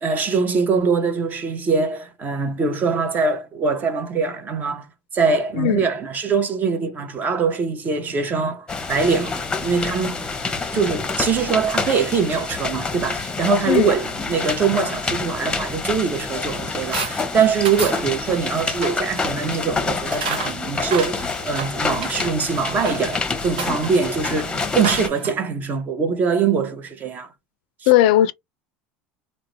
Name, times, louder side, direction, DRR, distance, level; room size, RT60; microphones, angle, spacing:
voice 1, 0.0-4.9 5.1-10.2 10.7-27.3 27.8-27.9, right 5 dB, 35° right, 0.7 m, -23 dB
voice 2, 5.5-5.9 13.7-13.9 27.9-28.3, left 13 dB, 75° left, 0.3 m, -16 dB
sound 1, 8.7-25.1, left 4 dB, 15° left, 0.7 m, -27 dB
sound 2, 16.9-17.2 17.6-18.1 18.7-19.0 20.1-22.3 22.7-23.2 23.6-25.3, right 4 dB, 90° right, 0.7 m, -30 dB
2.4 x 2.1 x 3.0 m
hypercardioid pair, 90°, 5 cm